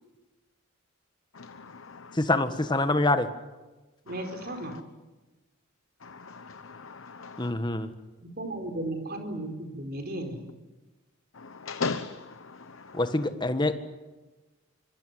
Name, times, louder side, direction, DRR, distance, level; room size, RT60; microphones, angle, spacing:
voice 1, 1.3-2.2 4.1-4.8 6.0-7.5 11.3-13.3, left 4 dB, 70° left, 1.0 m, -38 dB
voice 2, 2.2-3.3 7.4-7.9 12.9-13.8, left 2 dB, 20° left, 1.6 m, -25 dB
voice 3, 4.1-4.7 8.4-10.4, right 1 dB, 45° right, 4.7 m, -35 dB
25.5 x 23.5 x 9.3 m
head